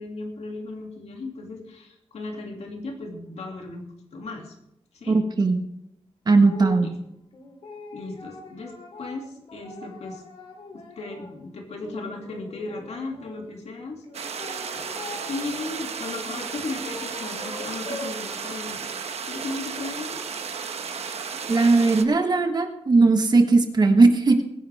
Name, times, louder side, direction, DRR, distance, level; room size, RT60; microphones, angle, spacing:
voice 1, 0.0-4.5 4.9-5.2 6.8-7.0 7.9-10.2 10.7-14.0 15.3-18.8 19.3-20.2, left 3 dB, 85° left, 1 dB, 2.6 m, -36 dB
voice 2, 5.1-5.6 6.3-6.9 21.5-24.4, right 3 dB, 40° right, 6 dB, 1.4 m, -18 dB
sound 1, 6.4-6.8 7.3-11.4 11.8-13.3 14.0-15.7 16.5-18.2, left 2 dB, 60° left, 3.3 m, -41 dB
sound 2, 14.1-22.0, right 6 dB, 75° right, 1.1 m, -34 dB
21.0 x 10.0 x 3.6 m, 0.81 s
wide cardioid pair, 170°, 11 cm